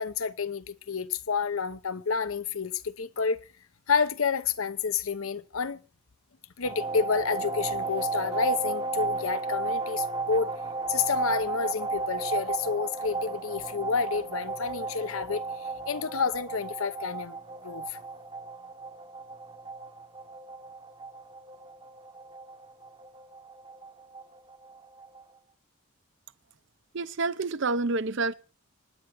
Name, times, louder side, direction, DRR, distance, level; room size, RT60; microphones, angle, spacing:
voice 1, 0.0-3.4 3.9-5.8 6.6-10.5 10.9-17.4 17.6-18.0, left 5 dB, 70° left, 0.8 m, -29 dB
sound 1, 6.6-25.2, right 3 dB, 25° right, 0.9 m, -34 dB
voice 2, 26.9-28.3, right 3 dB, 55° right, 0.7 m, -28 dB
26.0 x 9.9 x 4.5 m
head